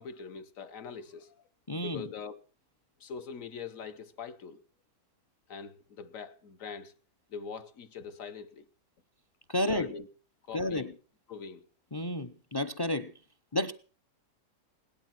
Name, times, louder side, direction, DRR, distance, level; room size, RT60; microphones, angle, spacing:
voice 1, 0.0-1.4 1.8-2.4 3.0-4.6 5.5-6.9 7.3-8.6 9.6-10.1 10.5-10.9 11.3-11.6, left 6 dB, 60° left, 1.4 m, -43 dB
voice 2, 1.7-2.1 9.5-9.9 10.5-10.9 11.9-13.1 13.5-13.7, left 1 dB, 30° left, 0.4 m, -31 dB
18.0 x 12.0 x 5.9 m
omnidirectional pair, 1.6 m